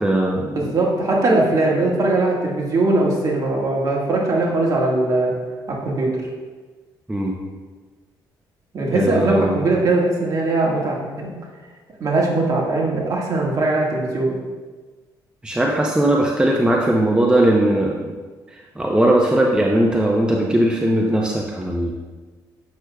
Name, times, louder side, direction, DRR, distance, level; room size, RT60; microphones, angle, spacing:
voice 1, 0.0-0.7 7.1-7.3 8.9-9.6 15.4-18.1 18.5-21.9, right 1 dB, 10° right, -1 dB, 0.7 m, -19 dB
voice 2, 0.6-5.3 5.7-6.2 8.7-11.3 12.0-14.4, right 2 dB, 45° right, -3 dB, 1.6 m, -20 dB
8.0 x 6.0 x 2.3 m, 1.4 s
cardioid pair, 85°, 9 cm